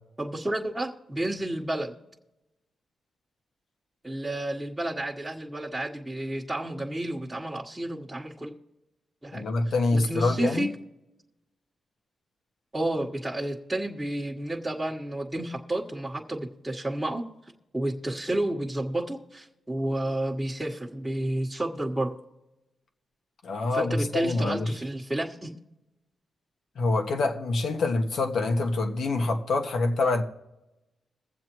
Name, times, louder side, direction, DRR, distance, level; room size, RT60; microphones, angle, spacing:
voice 1, 0.2-1.9 4.0-8.5 9.2-9.5 9.9-10.7 12.7-17.3 17.7-22.2 23.7-25.5, right 1 dB, 10° right, 1.2 m, -31 dB
voice 2, 9.3-10.7 23.4-24.7 26.7-30.2, left 3 dB, 70° left, 1.2 m, -26 dB
22.5 x 7.6 x 3.0 m
cardioid pair, 75°, 0 cm